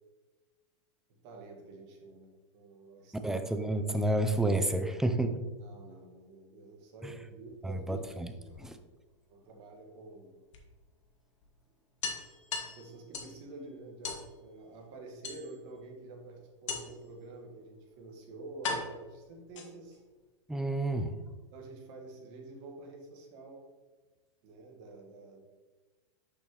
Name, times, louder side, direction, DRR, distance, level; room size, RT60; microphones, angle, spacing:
voice 1, 1.2-3.3 5.6-7.8 8.2-8.8 9.3-10.3 12.6-20.0 21.5-23.7 24.4-25.4, right 2 dB, 45° right, 0 dB, 1.6 m, -49 dB
voice 2, 3.2-5.4 7.6-8.8 20.5-21.2, right 1 dB, 5° right, 8 dB, 0.4 m, -30 dB
sound 1, 8.0-9.0 10.5-10.6 11.0-11.1 11.4-11.5 12.0-13.4 14.0-14.3 15.2-15.8 16.7-17.1 17.9-18.0 18.6-20.0, left 4 dB, 80° left, 1.3 m, -38 dB
6.3 x 6.1 x 3.0 m, 1.3 s
hypercardioid pair, 130°, 16 cm